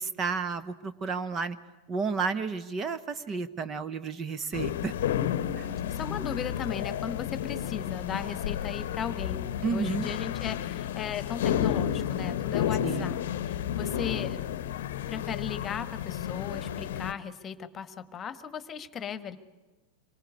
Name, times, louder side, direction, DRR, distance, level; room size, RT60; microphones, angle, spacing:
voice 1, 0.0-1.6 1.9-4.9 5.6-5.7 9.6-10.1 12.8-13.1, right 5 dB, 25° right, 14 dB, 1.0 m, -32 dB
sound 1, 4.5-17.1, left 10 dB, 55° left, 0.9 m, -31 dB
voice 2, 5.9-14.4 15.1-19.4, left 7 dB, 25° left, 15 dB, 1.4 m, -37 dB
25.5 x 24.0 x 9.6 m, 1.2 s
figure-of-eight pair, 90°, 0 cm